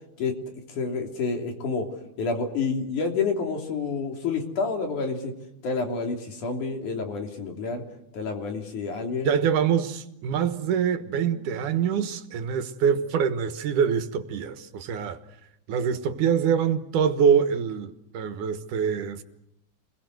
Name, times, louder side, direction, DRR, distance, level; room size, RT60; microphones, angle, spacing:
voice 1, 0.7-1.9 2.2-5.3 5.6-7.8 8.1-9.4, left 4 dB, 75° left, 4.6 m, -29 dB
voice 2, 9.2-15.2 15.7-19.2, right 7 dB, 80° right, 2.9 m, -25 dB
28.5 x 21.5 x 8.0 m
omnidirectional pair, 3.6 m